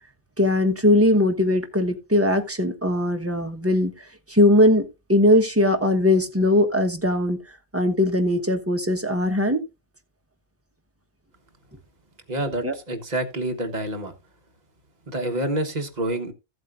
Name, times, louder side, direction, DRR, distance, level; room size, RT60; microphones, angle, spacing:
voice 1, 0.4-3.9 4.3-7.4 7.7-9.6 12.6-12.7, left 1 dB, 15° right, 1.1 m, -20 dB
voice 2, 12.3-14.1 15.1-16.3, right 1 dB, 40° right, 1.4 m, -27 dB
14.5 x 8.0 x 2.5 m
omnidirectional pair, 1.2 m